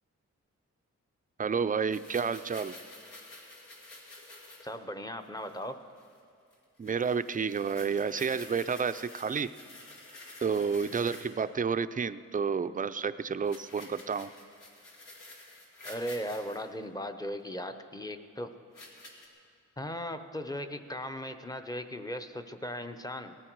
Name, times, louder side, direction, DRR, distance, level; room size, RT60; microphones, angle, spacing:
voice 1, 1.4-2.8 6.8-9.5 10.4-14.3, right 6 dB, 30° right, 13 dB, 0.4 m, -30 dB
sound 1, 1.9-4.7 5.2-5.7 6.0-6.2 6.5-6.6 6.8-11.4 13.4-16.6 17.5-17.6 18.7-19.3, left 2 dB, 90° left, 2.5 m, -50 dB
voice 2, 4.6-5.8 15.8-18.5 18.8-18.9 19.8-23.4, equal, 10° left, 8 dB, 0.7 m, -37 dB
19.0 x 14.0 x 4.6 m, 2.3 s
wide cardioid pair, 115°, 30 cm